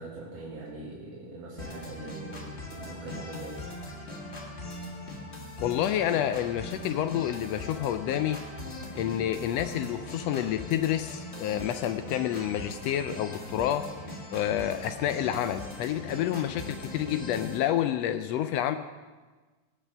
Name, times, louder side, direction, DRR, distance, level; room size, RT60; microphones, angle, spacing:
voice 1, 0.0-3.7, right 2 dB, 65° right, -5 dB, 2.9 m, -42 dB
sound 1, 1.6-17.6, left 1 dB, 30° left, 1.5 m, -40 dB
voice 2, 5.6-8.4 9.0-13.9 14.3-18.8, left 11 dB, 80° left, 10 dB, 1.5 m, -29 dB
17.5 x 6.8 x 6.6 m, 1.3 s
omnidirectional pair, 3.3 m